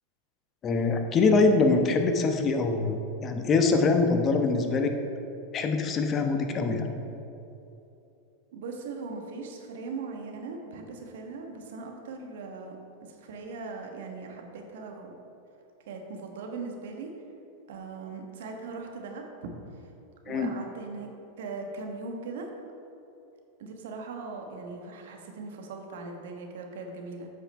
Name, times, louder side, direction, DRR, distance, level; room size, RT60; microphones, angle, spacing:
voice 1, 0.6-4.9 5.5-6.9 20.3-20.5, left 3 dB, 30° left, 5 dB, 0.9 m, -24 dB
voice 2, 8.5-12.8 13.1-15.2 15.9-17.1 17.7-19.5 20.2-21.1 21.4-22.5 23.6-27.3, right 4 dB, 65° right, 2 dB, 1.2 m, -39 dB
8.0 x 5.8 x 5.4 m, 2.8 s
hypercardioid pair, 95°, 0 cm